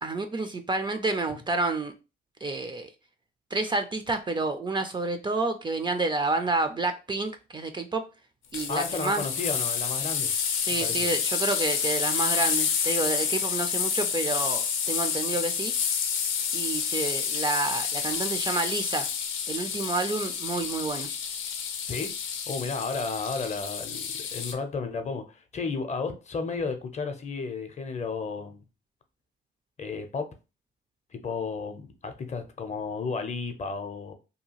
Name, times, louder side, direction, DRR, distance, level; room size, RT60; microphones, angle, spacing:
voice 1, 0.0-1.9 2.4-2.9 3.5-8.0 8.5-9.2 10.6-15.7 16.5-19.1 19.5-21.1, right 3 dB, 25° right, 0.4 m, -29 dB
sound 1, 8.5-24.5, left 7 dB, 90° left, 0.5 m, -29 dB
voice 2, 8.7-10.3 10.8-11.1 21.9-22.1 22.5-28.6 29.8-30.3 31.1-34.1, left 4 dB, 35° left, 0.6 m, -33 dB
2.7 x 2.3 x 2.8 m
cardioid pair, 90°, 20 cm